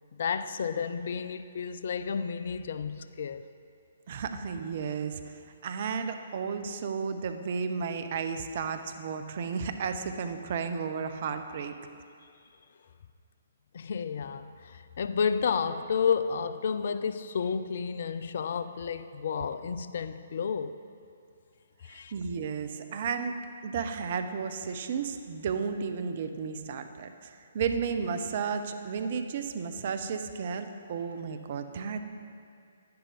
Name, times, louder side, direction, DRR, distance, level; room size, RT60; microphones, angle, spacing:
voice 1, 0.1-3.4 13.7-20.8 21.8-22.1, left 6 dB, 50° left, 0.4 m, -31 dB
voice 2, 4.1-11.8 21.9-23.4 23.6-32.0, right 6 dB, 45° right, 0.6 m, -33 dB
10.5 x 10.5 x 3.4 m
figure-of-eight pair, 130°, 0 cm